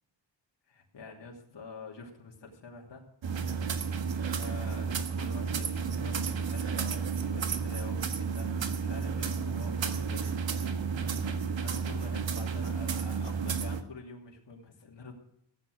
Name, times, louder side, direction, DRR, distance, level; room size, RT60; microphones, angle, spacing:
voice 1, 0.7-3.1 4.4-10.4 11.1-15.1, left 4 dB, 65° left, 0 dB, 3.1 m, -47 dB
sound 1, 3.2-13.8, right 6 dB, 75° right, 1.5 m, -32 dB
15.5 x 9.4 x 6.4 m, 0.72 s
cardioid pair, 85°, 46 cm